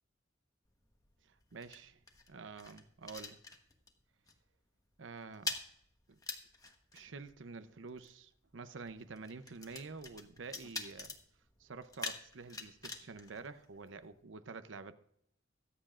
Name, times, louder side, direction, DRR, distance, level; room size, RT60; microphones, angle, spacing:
sound 1, 0.7-4.0 4.3-4.5 4.8-14.2, left 3 dB, 20° left, 1.1 m, -46 dB
voice 1, 1.2-2.0 2.3-3.4 5.0-5.5 6.1-6.2 6.9-11.1 11.6-14.9, right 4 dB, 90° right, 11 dB, 0.7 m, -48 dB
23.0 x 7.7 x 2.4 m, 0.72 s
head